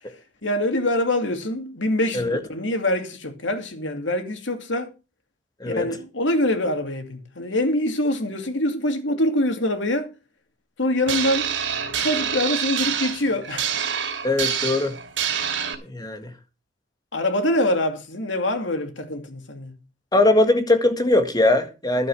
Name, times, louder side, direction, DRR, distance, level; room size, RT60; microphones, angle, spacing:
voice 1, 0.4-4.9 5.7-10.1 10.8-11.5 12.0-13.7 17.1-19.7, left 1 dB, 85° left, 2.5 m, -24 dB
sound 1, 11.1-15.7, right 8 dB, 90° right, 2.9 m, -26 dB
voice 2, 14.2-15.0 15.9-16.3 20.1-22.1, left 2 dB, 20° left, 1.9 m, -20 dB
12.0 x 8.0 x 6.3 m
head